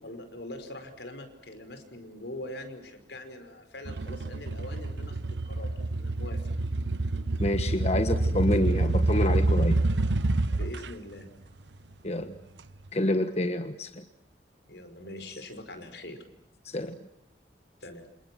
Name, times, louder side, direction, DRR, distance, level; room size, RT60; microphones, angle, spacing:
voice 1, 0.0-6.5 10.5-11.3 14.7-16.3 17.8-18.1, left 1 dB, 80° left, 8 dB, 5.2 m, -43 dB
sound 1, 3.9-10.9, right 2 dB, 90° right, 1.1 m, -27 dB
voice 2, 7.4-9.8 12.0-12.3 12.9-14.0 16.6-17.0, left 1 dB, 35° left, 8 dB, 1.3 m, -28 dB
29.5 x 28.0 x 6.1 m, 0.84 s
head